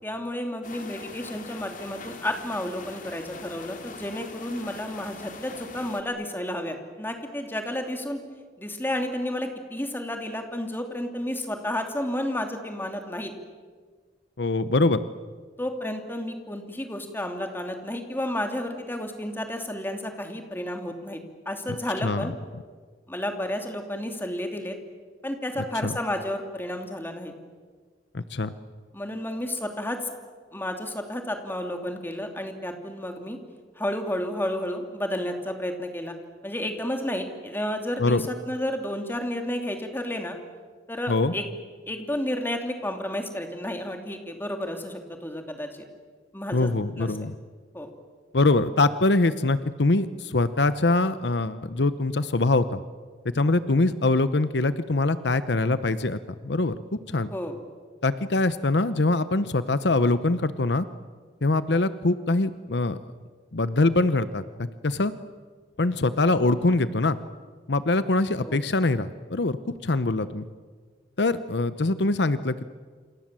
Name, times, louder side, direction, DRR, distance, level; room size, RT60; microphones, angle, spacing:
voice 1, 0.0-8.2 8.6-13.3 15.6-21.2 21.4-22.3 23.1-24.8 25.2-27.3 28.9-30.1 30.5-33.4 33.8-36.1 36.4-40.4 40.9-41.6 41.9-45.8 46.3-46.7 47.0-47.1 47.7-47.9 57.3-57.6 68.4-68.6, left 1 dB, 10° left, 4 dB, 3.0 m, -31 dB
sound 1, 0.6-6.0, left 3 dB, 50° left, 2.9 m, -42 dB
voice 2, 14.4-15.0 22.0-22.3 25.8-25.9 28.1-28.5 38.0-38.2 41.1-41.3 46.5-47.3 48.3-52.8 53.3-56.8 57.1-57.3 58.0-60.8 61.4-63.0 63.5-65.1 65.8-67.2 67.7-70.4 71.2-72.6, left 2 dB, 75° left, 13 dB, 0.9 m, -23 dB
28.0 x 27.5 x 7.6 m, 1.5 s
head